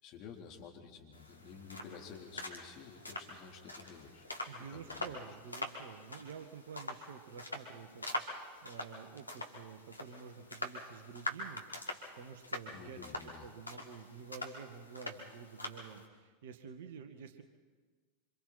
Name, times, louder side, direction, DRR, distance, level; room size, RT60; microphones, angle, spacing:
voice 1, 0.0-4.3 4.7-5.2 12.6-13.5, left 6 dB, 45° left, 0 dB, 3.8 m, -51 dB
sound 1, 1.1-16.0, left 1 dB, 85° left, 2.0 m, -44 dB
voice 2, 4.5-11.7 12.2-17.4, right 6 dB, 60° right, 7 dB, 1.9 m, -50 dB
27.0 x 26.0 x 4.4 m, 1.4 s
figure-of-eight pair, 85°, 0 cm